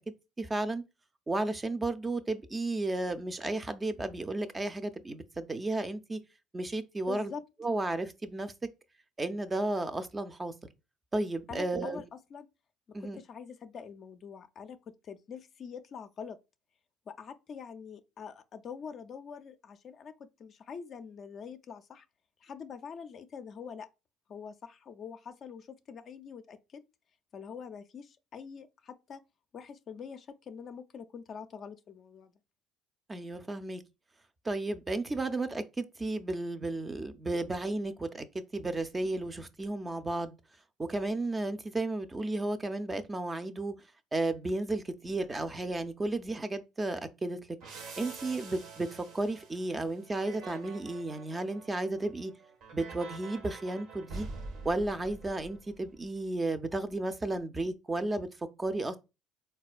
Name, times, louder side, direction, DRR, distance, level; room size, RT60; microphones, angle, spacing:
voice 1, 0.4-0.8 1.3-6.2 6.5-7.3 7.6-8.5 9.2-10.7 11.1-12.0 12.9-13.2 33.1-33.8 34.4-38.3 38.5-40.4 40.8-43.7 44.1-47.4 48.0-52.3 52.7-54.3 54.6-58.3 58.6-59.0, right 2 dB, 20° right, 0.4 m, -33 dB
voice 2, 7.1-7.4 11.5-12.5 13.0-16.4 17.1-22.1 22.4-23.9 24.3-26.8 27.3-29.2 29.5-32.3, left 6 dB, 50° left, 0.3 m, -45 dB
sound 1, 47.6-56.1, right 4 dB, 70° right, 0.7 m, -46 dB
4.0 x 2.2 x 2.4 m
supercardioid pair, 80°, 0 cm